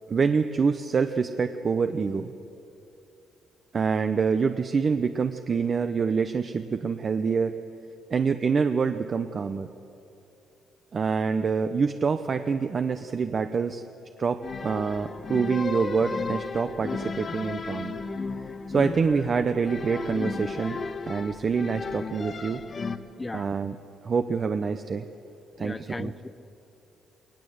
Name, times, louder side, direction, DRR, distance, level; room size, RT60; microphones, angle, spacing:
voice 1, 0.1-2.3 3.7-7.5 8.1-9.7 10.9-13.8 14.2-18.0 18.7-20.8 21.1-22.6 23.3-23.8 24.0-25.1 25.6-26.1, right 5 dB, 45° right, 8 dB, 0.8 m, -26 dB
Orchestral Music, 14.4-23.0, left 4 dB, 40° left, 1.2 m, -34 dB
voice 2, 23.2-23.5 25.6-26.3, left 2 dB, 20° left, 14 dB, 0.8 m, -36 dB
21.5 x 19.5 x 8.0 m, 2.8 s
cardioid pair, 90°, 0 cm